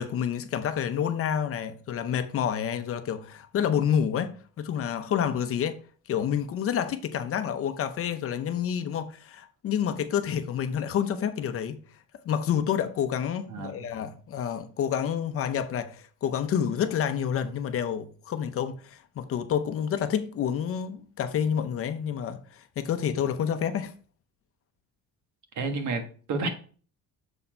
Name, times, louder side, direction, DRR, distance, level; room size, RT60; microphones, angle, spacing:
voice 1, 0.0-5.8 6.1-11.8 12.2-23.9, left 8 dB, 45° left, 0.7 m, -29 dB
voice 2, 13.5-13.9 25.5-26.5, right 3 dB, 60° right, 1.4 m, -30 dB
7.0 x 4.2 x 4.4 m
cardioid pair, 160°, 32 cm